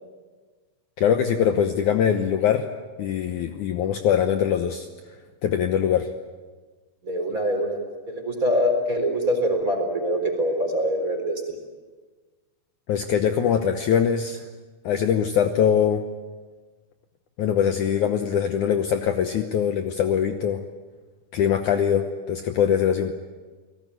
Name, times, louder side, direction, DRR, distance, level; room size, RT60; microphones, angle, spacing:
voice 1, 1.0-2.7 3.0-4.9 5.4-6.1 12.9-14.4 14.8-16.0 17.4-20.6 21.3-23.1, left 8 dB, 65° left, 7 dB, 2.2 m, -22 dB
voice 2, 7.0-11.6, equal, 20° right, 4 dB, 4.1 m, -24 dB
30.0 x 18.5 x 9.3 m, 1.4 s
omnidirectional pair, 4.3 m